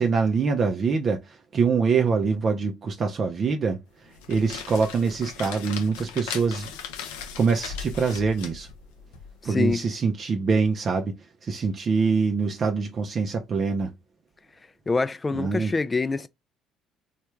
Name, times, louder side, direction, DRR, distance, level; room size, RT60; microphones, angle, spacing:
voice 1, 0.0-6.7 7.1-8.7 9.4-13.9 15.3-15.7, right 5 dB, 45° right, 0.5 m, -25 dB
sound 1, 4.0-9.7, left 7 dB, 85° left, 0.5 m, -38 dB
voice 2, 9.5-9.8 14.9-16.3, left 3 dB, 25° left, 0.4 m, -25 dB
3.2 x 2.3 x 3.1 m
hypercardioid pair, 65°, 0 cm